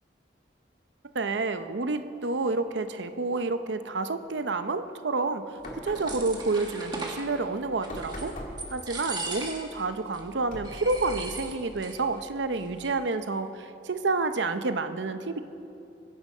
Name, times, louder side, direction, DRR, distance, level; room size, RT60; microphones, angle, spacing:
voice 1, 1.1-8.3 8.7-15.4, right 3 dB, 80° right, 9 dB, 0.7 m, -29 dB
sound 1, 5.6-13.1, equal, 45° left, 2.4 m, -44 dB
sound 2, 5.6-7.3 7.8-8.3 8.6-9.8 10.1-10.2 10.6-12.0 12.2-12.3 12.6-13.1, right 3 dB, 25° right, 1.6 m, -38 dB
23.0 x 10.0 x 5.5 m, 2.8 s
head